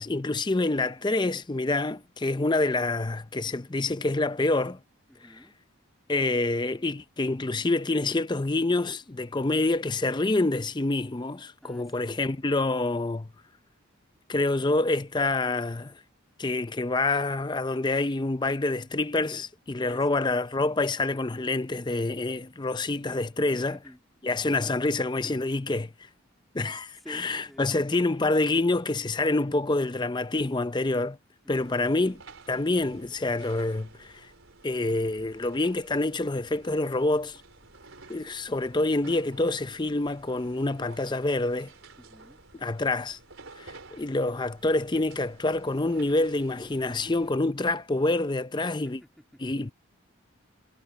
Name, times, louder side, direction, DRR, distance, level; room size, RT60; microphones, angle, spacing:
voice 1, 0.0-4.8 6.1-13.3 14.3-15.9 16.4-23.8 24.2-25.9 26.5-31.2 31.5-32.2 32.5-34.3 34.6-37.4 38.1-41.7 42.6-43.2 43.6-49.0 49.4-49.7, left 2 dB, 20° left, 0.5 m, -27 dB
voice 2, 0.7-1.1 5.1-5.6 11.6-12.1 19.8-20.2 23.5-24.0 26.9-27.7 31.4-31.9 42.0-42.4 48.8-49.4, equal, ahead, 2.2 m, -50 dB
sound 1, 31.5-47.4, right 3 dB, 70° right, 4.2 m, -52 dB
head